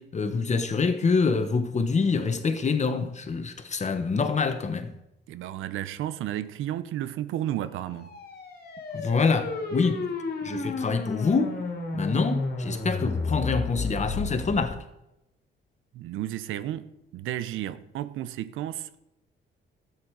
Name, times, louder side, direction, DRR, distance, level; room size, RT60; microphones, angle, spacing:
voice 1, 0.0-4.9 8.9-10.1 10.4-11.6 11.9-14.8, left 4 dB, 35° left, 1.3 m, -26 dB
voice 2, 5.3-8.1 15.9-19.0, right 12 dB, 85° right, 0.7 m, -33 dB
sound 1, 7.8-14.7, left 3 dB, 50° left, 2.2 m, -32 dB
12.5 x 8.5 x 4.8 m
cardioid pair, 90°, 20 cm